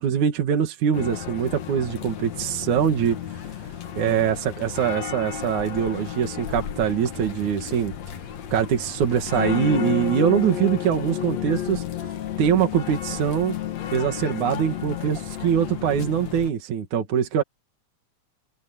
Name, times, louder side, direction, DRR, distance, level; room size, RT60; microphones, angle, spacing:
voice 1, 0.0-3.2 4.0-7.9 8.5-11.8 12.4-13.6 13.9-17.4, right 8 dB, 70° right, 3.3 m, -23 dB
sound 1, 0.9-16.5, left 10 dB, 60° left, 2.6 m, -32 dB
omnidirectional pair, 3.6 m